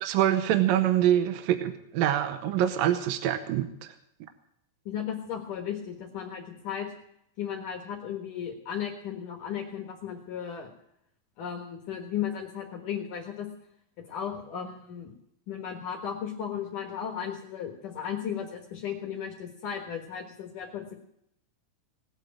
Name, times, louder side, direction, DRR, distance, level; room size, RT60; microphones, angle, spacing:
voice 1, 0.0-3.9, right 11 dB, 75° right, 8 dB, 2.4 m, -25 dB
voice 2, 4.9-6.9 7.4-10.7 11.4-13.5 14.1-15.1 15.5-21.0, left 8 dB, 60° left, 2 dB, 2.8 m, -35 dB
19.5 x 8.2 x 8.5 m, 0.75 s
omnidirectional pair, 4.5 m